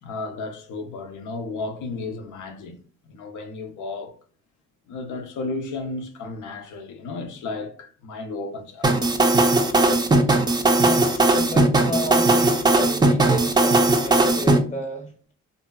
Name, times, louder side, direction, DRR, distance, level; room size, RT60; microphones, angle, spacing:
voice 1, 0.0-2.8 3.0-4.1 4.9-8.9, left 3 dB, 80° left, 0.6 m, -33 dB
sound 1, 8.8-14.6, right 2 dB, 15° right, 0.4 m, -18 dB
voice 2, 10.8-15.1, equal, 25° left, 0.8 m, -32 dB
2.7 x 2.5 x 2.2 m
cardioid pair, 90°, 30 cm